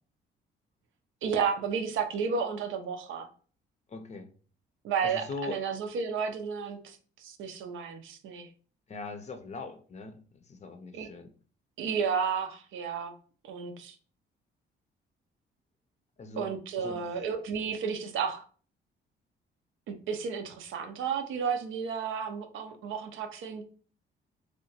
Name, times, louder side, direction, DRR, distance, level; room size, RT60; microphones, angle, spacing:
voice 1, 1.2-3.3 4.8-8.5 10.9-11.1 11.8-13.1 13.4-14.0 16.4-18.4 19.9-23.6, right 6 dB, 80° right, 7 dB, 0.5 m, -32 dB
voice 2, 3.9-4.3 5.0-5.6 8.9-11.3 16.2-16.5 16.8-17.0, left 3 dB, 35° left, 7 dB, 0.5 m, -40 dB
2.8 x 2.2 x 2.7 m, 0.41 s
cardioid pair, 90°, 20 cm